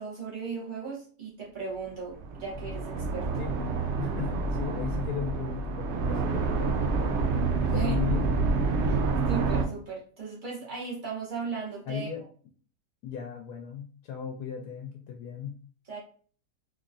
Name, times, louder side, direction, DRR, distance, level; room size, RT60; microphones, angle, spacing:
voice 1, 0.0-3.3 7.6-8.0 9.3-12.1 15.9-16.0, right 5 dB, 30° right, -5 dB, 1.5 m, -36 dB
sound 1, 2.1-9.7, right 3 dB, 65° right, 0.7 m, -28 dB
voice 2, 3.4-3.7 4.0-6.9 7.7-8.3 8.9-9.0 11.9-12.2 13.0-15.6, left 7 dB, 75° left, 3 dB, 1.1 m, -36 dB
3.9 x 3.1 x 2.5 m, 0.43 s
omnidirectional pair, 1.8 m